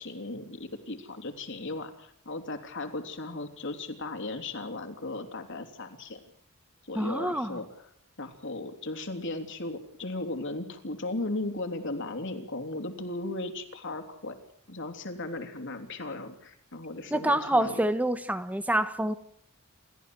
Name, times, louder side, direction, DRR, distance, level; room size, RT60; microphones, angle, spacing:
voice 1, 0.0-6.2 6.8-7.9 8.2-14.4 14.7-17.8, left 2 dB, 55° left, 6 dB, 3.2 m, -36 dB
voice 2, 6.9-7.6 17.1-19.1, right 1 dB, 5° right, 11 dB, 1.2 m, -27 dB
29.0 x 14.5 x 7.7 m, 0.66 s
head